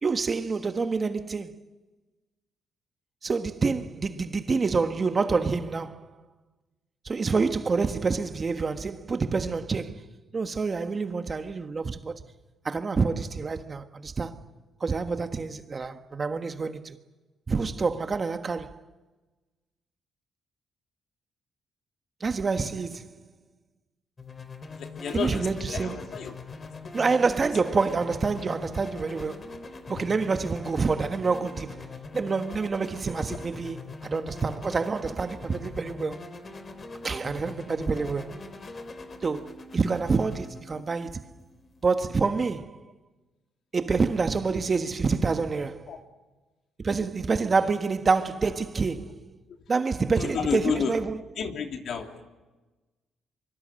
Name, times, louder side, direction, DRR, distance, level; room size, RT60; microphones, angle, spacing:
voice 1, 0.0-1.5 3.2-6.1 7.0-10.0 10.3-12.2 12.6-14.4 14.8-17.0 17.5-18.8 22.2-23.2 25.1-26.0 26.9-29.6 29.9-36.3 37.0-38.4 39.2-41.3 41.8-42.8 43.7-45.9 46.8-49.2 49.7-51.2, right 4 dB, 35° right, 1.5 m, -27 dB
sound 1, 24.2-41.9, left 3 dB, 35° left, 3.0 m, -43 dB
voice 2, 24.7-26.3 26.8-26.9 33.3-33.4 45.9-46.0 50.2-50.9 51.4-52.2, left 6 dB, 65° left, 3.0 m, -31 dB
25.5 x 24.0 x 7.8 m
cardioid pair, 90°, 0 cm